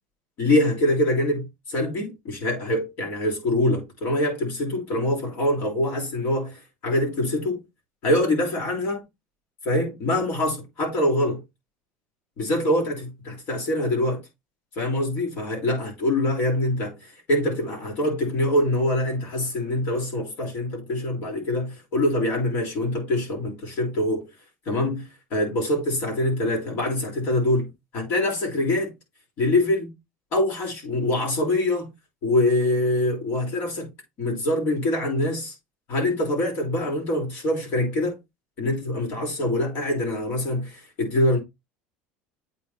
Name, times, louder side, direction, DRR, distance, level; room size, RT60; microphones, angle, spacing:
voice 1, 0.4-7.6 8.0-9.0 9.6-11.4 12.4-14.2 14.7-24.3 24.6-27.7 27.9-28.9 29.4-29.9 30.3-31.9 32.2-33.9 34.2-35.5 35.9-38.2 38.6-41.4, left 1 dB, 50° left, 3.4 m, -24 dB
8.2 x 3.7 x 4.3 m
cardioid pair, 135°, 4 cm